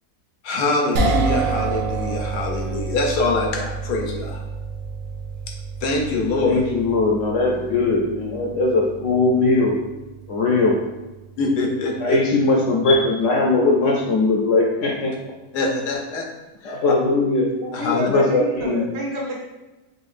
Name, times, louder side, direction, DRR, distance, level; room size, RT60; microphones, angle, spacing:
voice 1, 0.4-4.4 5.8-6.6 11.4-12.2 15.5-16.2 16.6-16.8 17.7-18.1, left 2 dB, 90° left, 0 dB, 1.4 m, -24 dB
sound 1, 1.0-13.3, right 4 dB, 90° right, 1.3 m, -30 dB
voice 2, 6.4-9.8 10.3-10.8 12.0-15.1 16.6-17.5 17.9-18.8, left 3 dB, 65° left, 0 dB, 0.8 m, -19 dB
voice 3, 17.6-19.4, equal, 50° right, -3 dB, 1.0 m, -28 dB
5.1 x 3.0 x 2.4 m, 1.1 s
omnidirectional pair, 1.7 m